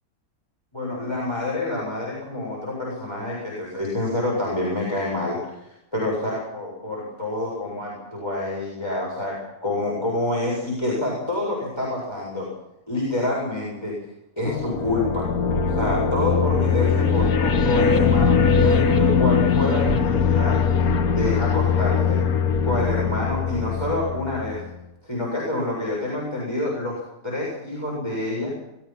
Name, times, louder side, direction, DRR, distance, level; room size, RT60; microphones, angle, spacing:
voice 1, 0.7-12.5 12.9-13.9 14.4-15.3 15.7-20.8 21.2-22.2 22.6-24.6 25.0-28.5, left 2 dB, 15° left, -5 dB, 7.5 m, -27 dB
sound 1, 14.4-24.6, left 6 dB, 65° left, 1.7 m, -21 dB
23.0 x 21.0 x 6.0 m, 0.88 s
omnidirectional pair, 1.7 m